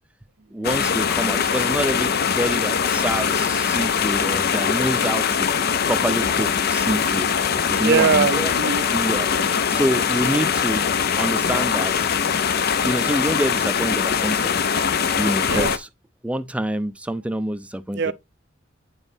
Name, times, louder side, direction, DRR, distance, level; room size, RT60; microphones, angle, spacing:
voice 1, 0.5-5.5 5.8-8.5 8.9-10.9 11.2-11.9 12.8-14.6 15.2-15.9 16.2-18.1, right 1 dB, 5° right, 0.4 m, -27 dB
sound 1, 0.6-15.8, left 7 dB, 55° left, 0.5 m, -22 dB
voice 2, 7.8-8.9 15.5-15.8 17.9-18.1, right 5 dB, 60° right, 0.5 m, -21 dB
9.1 x 3.9 x 2.7 m
head